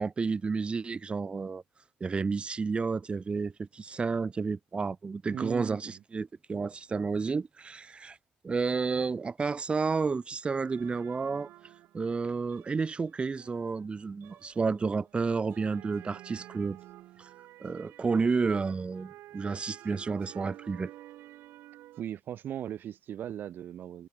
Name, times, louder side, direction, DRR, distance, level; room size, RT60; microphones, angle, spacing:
voice 1, 0.0-1.6 2.0-8.2 8.4-11.5 11.9-16.8 17.2-17.3 17.6-20.9, right 4 dB, 30° right, 1.9 m, -31 dB
voice 2, 5.3-6.0 22.0-24.1, right 10 dB, 65° right, 3.1 m, -38 dB
sound 1, 10.5-22.0, right 15 dB, 85° right, 3.0 m, -51 dB
cardioid pair, 95°, 4 cm